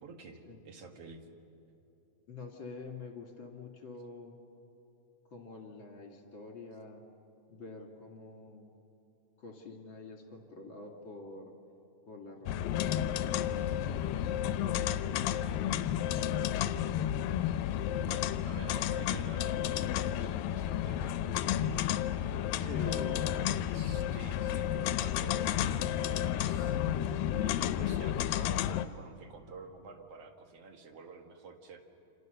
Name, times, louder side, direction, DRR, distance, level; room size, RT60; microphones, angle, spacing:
voice 1, 0.0-1.3 18.0-21.9 22.6-26.8 27.4-31.8, right 4 dB, 50° right, 5 dB, 2.4 m, -50 dB
voice 2, 2.3-4.4 5.3-7.0 7.5-8.7 9.4-11.5 12.1-13.2 13.6-16.0 22.6-23.3, left 4 dB, 40° left, 2 dB, 2.7 m, -47 dB
sound 1, 12.5-28.9, left 11 dB, 90° left, 2.4 m, -31 dB
28.5 x 27.5 x 6.7 m, 3.0 s
omnidirectional pair, 3.9 m